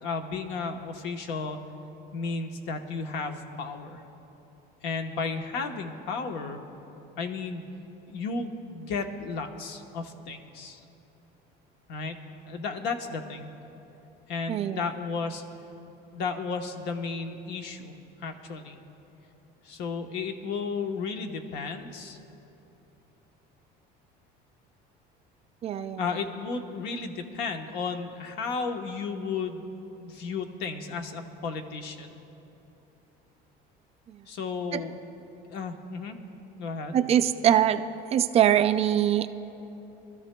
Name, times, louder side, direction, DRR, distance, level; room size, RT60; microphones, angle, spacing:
voice 1, 0.0-1.6 2.1-4.0 4.8-6.6 7.2-7.6 8.1-10.8 11.9-12.2 12.4-13.5 14.3-15.4 16.1-17.9 18.2-18.8 19.6-22.2 26.0-29.7 30.0-32.1 34.3-34.9 35.5-36.2 36.6-37.0, left 4 dB, 65° left, 5 dB, 1.1 m, -33 dB
voice 2, 14.5-14.9 25.6-26.0 34.1-34.2 34.7-34.8 36.9-37.8 38.1-39.3, right 10 dB, 35° right, 10 dB, 0.3 m, -23 dB
25.5 x 13.0 x 2.2 m, 3.0 s
cardioid pair, 150°, 19 cm